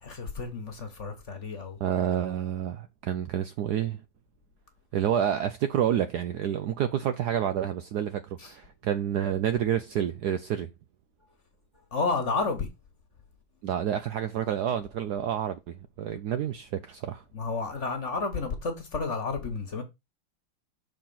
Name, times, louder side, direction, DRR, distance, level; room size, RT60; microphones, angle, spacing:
voice 1, 0.0-1.8 8.4-8.5 11.9-12.7 17.3-19.8, left 4 dB, 40° left, 1.5 m, -31 dB
voice 2, 1.8-4.0 4.9-10.7 13.6-17.2, right 9 dB, 70° right, 1.0 m, -29 dB
6.6 x 4.3 x 5.7 m
omnidirectional pair, 2.2 m